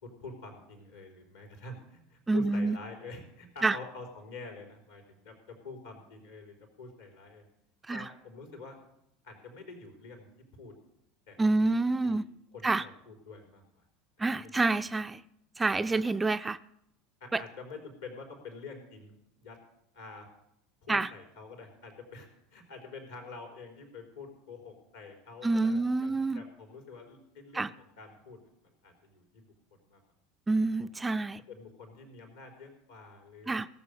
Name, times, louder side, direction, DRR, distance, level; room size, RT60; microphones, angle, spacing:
voice 1, 0.0-7.4 7.9-8.8 9.2-10.3 10.5-10.7 11.3-12.2 12.5-13.8 14.2-14.9 15.7-16.0 17.2-19.6 19.9-20.3 20.8-29.5 29.8-30.0 31.5-33.6, left 3 dB, 75° left, 3.7 m, -47 dB
voice 2, 2.3-2.8 3.6-3.8 7.9-8.1 11.4-12.2 12.6-12.8 14.2-15.2 15.6-16.6 17.3-17.4 20.9-21.1 25.4-26.4 27.5-27.7 30.5-31.4 33.5-33.7, right 3 dB, 15° right, 0.4 m, -27 dB
17.5 x 7.0 x 6.5 m
figure-of-eight pair, 75°, 0 cm